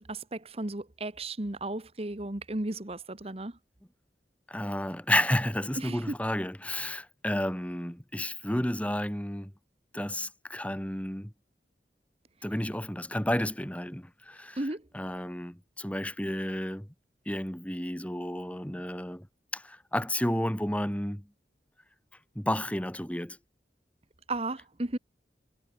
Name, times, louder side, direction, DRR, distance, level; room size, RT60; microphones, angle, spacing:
voice 1, 0.0-3.6 5.8-6.1 14.6-14.9 24.3-25.0, right 2 dB, 35° right, 1.4 m, -34 dB
voice 2, 4.5-9.5 9.9-11.3 12.4-14.6 14.9-16.9 17.3-19.3 19.5-21.3 22.3-23.4, left 1 dB, 10° left, 2.4 m, -31 dB
head